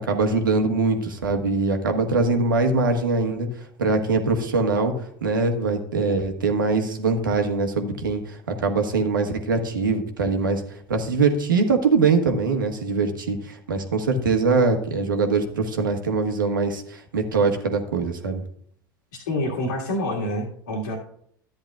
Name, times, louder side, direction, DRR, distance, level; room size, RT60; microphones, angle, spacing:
voice 1, 0.0-4.9 5.2-10.6 10.9-18.4, right 4 dB, 75° right, 5 dB, 1.4 m, -22 dB
voice 2, 19.1-21.0, left 1 dB, 70° left, -4 dB, 1.9 m, -27 dB
13.0 x 9.8 x 2.4 m, 0.65 s
figure-of-eight pair, 75°, 11 cm